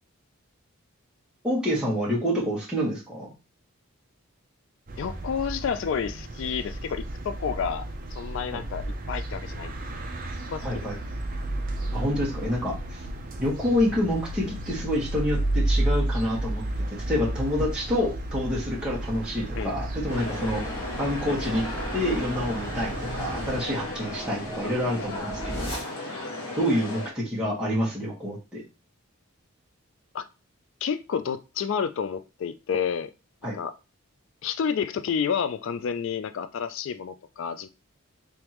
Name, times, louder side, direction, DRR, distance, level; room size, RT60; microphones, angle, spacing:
voice 1, 1.4-3.3 8.5-8.6 10.6-11.0 11.9-13.0 13.4-16.6 16.9-20.6 21.0-21.6 21.9-25.7 26.5-28.6 33.4-33.5, equal, 5° right, 1.3 m, -27 dB
sound 1, 4.9-23.6, right 1 dB, 40° right, 0.5 m, -32 dB
voice 2, 5.0-9.8 10.5-10.9 19.6-19.7 21.3-21.4 30.1-30.3 30.8-33.1 33.5-33.7 34.4-37.7, left 7 dB, 60° left, 0.3 m, -30 dB
sound 2, 20.1-27.1, left 2 dB, 85° left, 1.3 m, -35 dB
sound 3, 22.0-26.4, right 1 dB, 25° left, 1.7 m, -39 dB
3.6 x 3.5 x 3.0 m
head